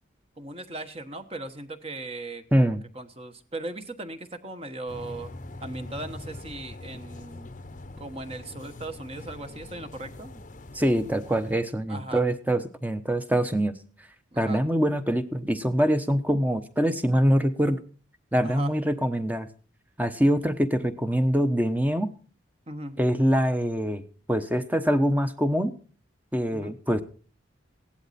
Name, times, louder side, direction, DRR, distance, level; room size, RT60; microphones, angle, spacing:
voice 1, 0.4-5.3 5.6-7.5 8.0-10.4 11.9-12.2 14.3-14.6 18.4-18.7 22.7-23.0 26.5-26.8, right 2 dB, 30° right, 8 dB, 1.3 m, -38 dB
voice 2, 2.5-2.8 10.7-13.7 14.4-17.8 18.3-19.5 20.0-22.1 23.0-24.0 24.3-25.7 26.3-27.0, equal, 10° right, 10 dB, 1.0 m, -24 dB
sound 1, 4.9-11.5, left 2 dB, 40° left, 0.9 m, -43 dB
16.5 x 11.5 x 4.2 m, 0.39 s
head